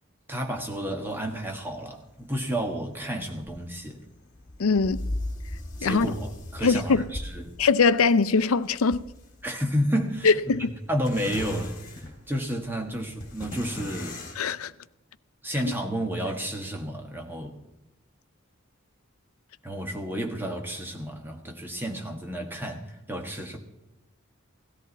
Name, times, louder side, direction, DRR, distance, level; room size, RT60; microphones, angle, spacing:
voice 1, 0.3-4.0 5.8-7.5 9.4-14.2 15.4-17.6 19.6-23.6, equal, 10° right, 1.5 m, -31 dB
sound 1, 0.6-14.4, left 1 dB, 40° left, 2.9 m, -40 dB
voice 2, 4.6-5.0 5.8-6.1 6.6-7.0 7.6-9.0 10.2-10.7 14.4-14.7, left 4 dB, 85° left, 0.6 m, -21 dB
17.0 x 13.5 x 4.1 m
head